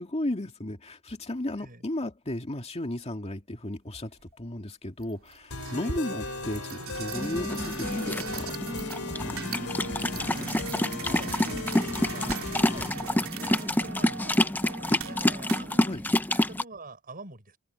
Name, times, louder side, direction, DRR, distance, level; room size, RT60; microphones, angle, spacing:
voice 1, 0.0-8.9 14.9-15.1 15.8-16.0, left 1 dB, 30° left, 2.3 m, -34 dB
sound 1, 4.2-4.3 5.0-15.9, right 5 dB, 70° right, 3.1 m, -40 dB
sound 2, 5.5-12.9, left 4 dB, 80° left, 2.9 m, -37 dB
voice 2, 5.7-6.0 10.0-14.4 15.0-15.7 16.0-17.6, right 2 dB, 40° right, 6.4 m, -46 dB
sound 3, 7.1-16.6, left 1 dB, 10° left, 0.6 m, -28 dB
open air
head